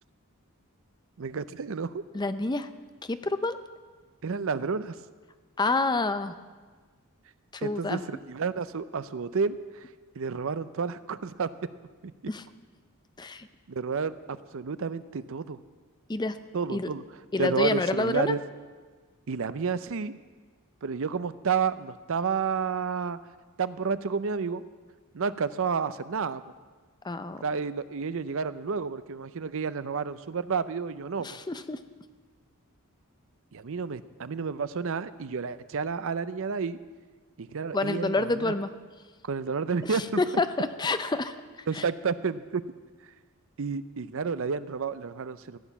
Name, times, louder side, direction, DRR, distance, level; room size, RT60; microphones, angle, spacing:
voice 1, 1.2-2.0 4.2-4.9 7.6-9.6 10.2-11.5 12.0-12.1 13.7-15.6 16.5-17.0 17.4-18.4 19.3-20.1 20.8-23.2 23.6-24.6 25.1-26.4 27.4-31.4 33.5-36.8 37.4-38.5 39.3-40.2 41.7-42.7 43.6-45.6, right 5 dB, 65° right, 14 dB, 0.6 m, -30 dB
voice 2, 2.1-2.7 3.0-3.6 5.6-6.3 7.5-8.0 12.3-12.4 13.2-13.5 16.1-16.4 16.7-16.9 17.3-18.3 27.0-27.4 31.2-31.8 37.7-38.7 39.8-41.4 41.7-41.8, left 2 dB, 20° left, 11 dB, 0.5 m, -28 dB
15.5 x 9.0 x 7.2 m, 1.4 s
head